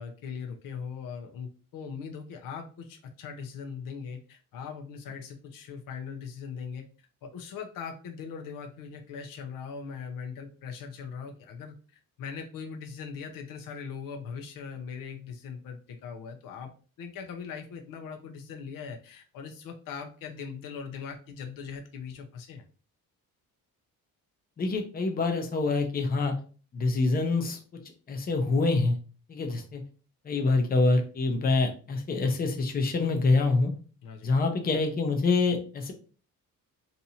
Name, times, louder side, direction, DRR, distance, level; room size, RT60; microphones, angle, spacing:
voice 1, 0.0-11.7 12.2-16.7 17.0-22.6 34.0-34.3, left 6 dB, 70° left, 4 dB, 0.6 m, -40 dB
voice 2, 24.6-26.3 26.7-27.6 28.1-29.0 29.3-29.8 30.2-33.7 34.2-35.9, left 3 dB, 25° left, 4 dB, 0.6 m, -26 dB
2.7 x 2.5 x 4.1 m, 0.38 s
cardioid pair, 165°, 35 cm